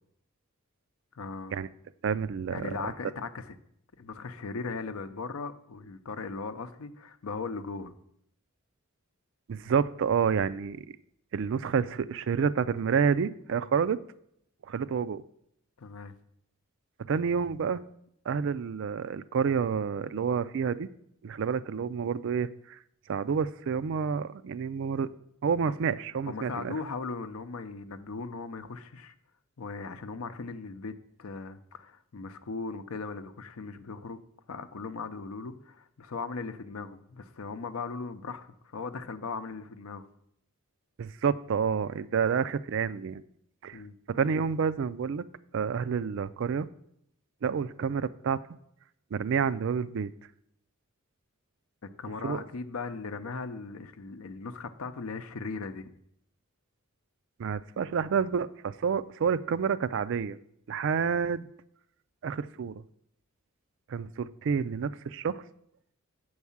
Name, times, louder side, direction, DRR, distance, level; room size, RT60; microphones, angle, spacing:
voice 1, 1.1-1.6 2.5-3.6 4.0-7.9 15.8-16.1 25.7-25.8 26.3-29.1 29.6-30.9 31.2-34.2 34.5-40.0 43.7-43.9 51.8-55.9, left 4 dB, 80° left, 10 dB, 0.6 m, -38 dB
voice 2, 2.0-2.7 9.5-10.9 11.3-14.0 14.7-15.2 17.1-17.8 18.3-20.9 21.2-22.8 23.1-25.1 25.4-26.7 41.0-43.2 43.6-43.8 44.1-45.2 45.5-46.7 47.4-48.4 49.1-50.1 52.2-52.4 57.4-60.4 60.7-61.5 62.2-62.7 63.9-65.4, right 6 dB, 60° right, 15 dB, 0.4 m, -29 dB
7.2 x 4.8 x 7.0 m, 0.72 s
head